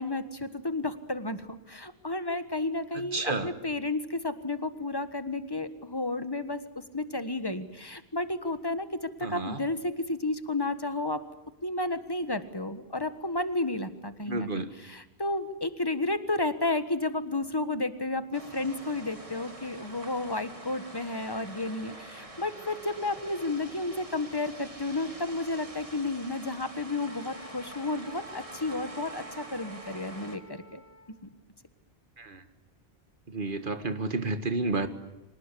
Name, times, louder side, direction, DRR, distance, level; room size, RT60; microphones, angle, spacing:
voice 1, 0.0-11.2 11.6-30.8 31.2-31.3, left 2 dB, 25° left, 11 dB, 1.5 m, -32 dB
voice 2, 3.1-3.5 9.2-9.6 14.3-14.7 32.2-32.4 33.3-34.9, right 3 dB, 55° right, 10 dB, 1.8 m, -30 dB
sound 1, 18.3-30.4, right 1 dB, 35° right, 2.5 m, -46 dB
Wind instrument woodwind instrument, 26.9-31.1, right 1 dB, 75° left, 3.9 m, -48 dB
26.0 x 19.0 x 9.9 m, 1.0 s
omnidirectional pair, 1.0 m